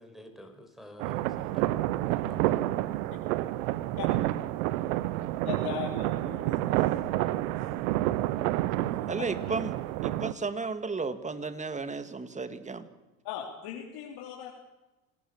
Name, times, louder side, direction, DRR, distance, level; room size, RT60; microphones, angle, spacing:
voice 1, 0.0-2.6 2.9-3.1, equal, ahead, 6 dB, 5.4 m, -50 dB
sound 1, 1.0-10.3, right 15 dB, 80° right, 1.2 m, -29 dB
voice 2, 5.4-6.9 7.2-7.5 13.2-14.5, left 10 dB, 65° left, -1 dB, 3.8 m, -39 dB
voice 3, 9.1-9.8 10.0-12.9, right 4 dB, 15° right, 11 dB, 2.1 m, -34 dB
27.5 x 18.5 x 7.2 m, 1.1 s
supercardioid pair, 100°, 41 cm